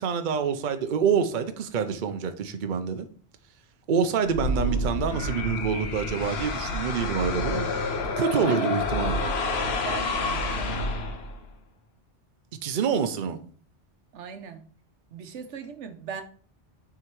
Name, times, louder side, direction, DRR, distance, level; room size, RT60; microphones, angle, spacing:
voice 1, 0.0-3.1 3.9-7.7 8.2-9.2 12.6-13.4, right 6 dB, 50° right, 8 dB, 0.7 m, -26 dB
sound 1, 4.2-11.5, left 2 dB, 65° left, 1.1 m, -29 dB
voice 2, 9.8-10.8 14.1-14.6 15.1-16.2, right 6 dB, 90° right, 9 dB, 1.1 m, -38 dB
6.2 x 3.7 x 4.5 m, 0.44 s
omnidirectional pair, 1.2 m